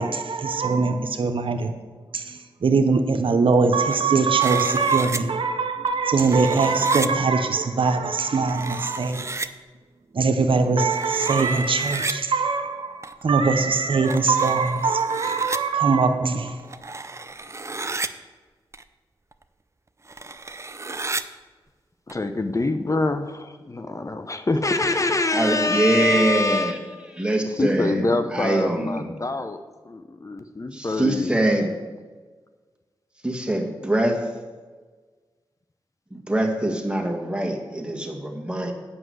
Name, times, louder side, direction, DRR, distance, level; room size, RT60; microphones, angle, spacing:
voice 1, 0.0-1.8 2.1-9.3 10.1-16.7, right 4 dB, 70° right, 7 dB, 0.8 m, -22 dB
sound 1, 3.6-4.1 4.4-5.2 5.9-7.1 8.3-9.5 10.8-12.1 13.0-13.2 14.0-15.6 16.5-18.1 18.7-18.8 19.3-19.4 20.0-21.2 22.1-22.2, right 3 dB, 30° right, 0.6 m, -33 dB
voice 2, 22.1-26.8 27.6-29.6 29.8-31.4, left 2 dB, 35° left, 8 dB, 0.7 m, -25 dB
voice 3, 25.3-26.8 27.2-29.0 30.7-31.7 33.2-34.3 36.1-38.7, right 1 dB, 10° right, 2 dB, 1.9 m, -23 dB
8.0 x 6.0 x 7.9 m, 1.4 s
cardioid pair, 45°, 9 cm